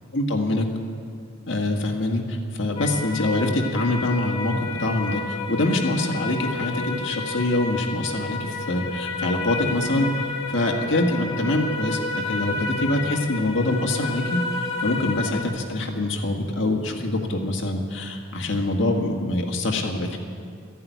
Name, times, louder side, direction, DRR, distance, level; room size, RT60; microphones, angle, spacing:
voice 1, 0.1-0.7 1.5-20.2, left 1 dB, 60° left, 2 dB, 1.8 m, -25 dB
sound 1, 2.8-15.4, left 3 dB, 30° left, 1.8 m, -31 dB
14.0 x 11.0 x 9.4 m, 2.2 s
head